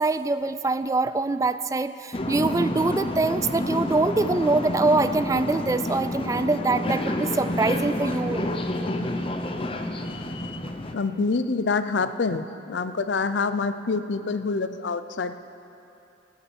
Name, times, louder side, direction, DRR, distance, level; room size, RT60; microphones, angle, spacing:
voice 1, 0.0-8.6, right 3 dB, 20° right, 13 dB, 0.3 m, -24 dB
sound 1, 2.1-10.9, left 1 dB, 30° left, 0.7 m, -29 dB
voice 2, 10.0-10.6 10.9-15.4, left 4 dB, 75° left, 12 dB, 0.6 m, -27 dB
18.5 x 7.2 x 8.6 m, 2.8 s
head